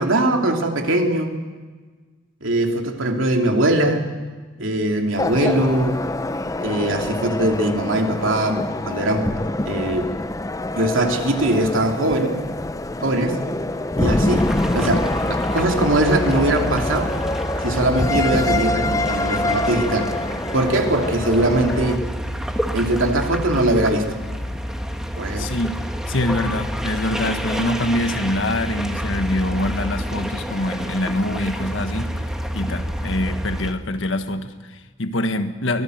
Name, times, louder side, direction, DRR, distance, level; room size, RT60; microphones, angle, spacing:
voice 1, 0.0-1.4 2.4-4.1 4.6-6.0 6.6-9.3 9.7-10.1 10.7-12.4 13.0-13.4 14.0-17.1 17.6-20.1 20.5-22.0 22.7-24.1 25.2-25.5, right 1 dB, 80° right, 2 dB, 2.9 m, -21 dB
sound 1, 5.2-22.0, left 2 dB, 15° left, 0.6 m, -25 dB
sound 2, 14.3-33.7, equal, 5° right, 1.5 m, -28 dB
voice 2, 25.4-25.8 26.1-32.1 32.5-35.8, left 1 dB, 75° left, 8 dB, 1.6 m, -24 dB
24.5 x 19.0 x 7.9 m, 1.4 s
head